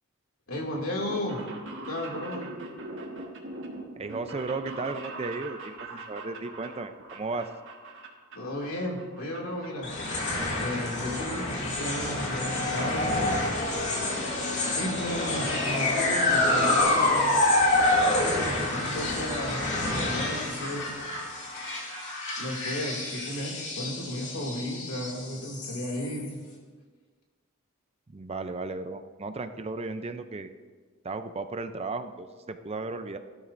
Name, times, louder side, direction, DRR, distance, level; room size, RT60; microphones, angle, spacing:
voice 1, 0.5-1.4 1.9-2.5 8.3-9.9 10.6-13.1 14.7-17.3 18.1-20.9 22.4-26.3, left 1 dB, 80° left, 0 dB, 2.4 m, -34 dB
sound 1, 1.1-8.7 9.0-9.7 10.0-11.1 11.3-11.4 12.3-12.4 12.6-12.7 13.0-13.1 13.4-13.7 14.0-14.1 14.3-14.4, right 2 dB, 60° right, 1.5 m, -42 dB
voice 2, 4.0-7.5 28.1-30.5 31.0-33.2, right 3 dB, 30° right, 9 dB, 0.5 m, -35 dB
sound 2, 9.8-26.3, left 2 dB, 55° left, 2.5 m, -27 dB
17.0 x 12.5 x 2.6 m, 1.5 s
head